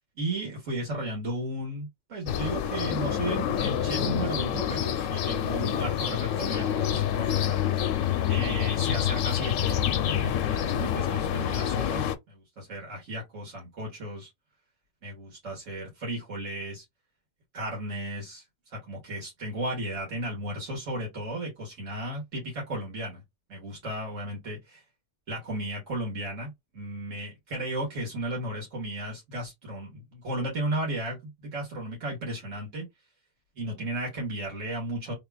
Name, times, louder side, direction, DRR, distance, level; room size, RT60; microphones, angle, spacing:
voice 1, 0.2-7.6 8.3-14.3 15.0-16.8 17.5-18.4 18.7-23.2 23.5-24.8 25.3-32.9 33.6-35.1, right 1 dB, 85° right, 1.9 m, -35 dB
sound 1, 2.3-12.1, left 9 dB, 80° left, 0.9 m, -27 dB
3.4 x 2.4 x 3.4 m
omnidirectional pair, 1.3 m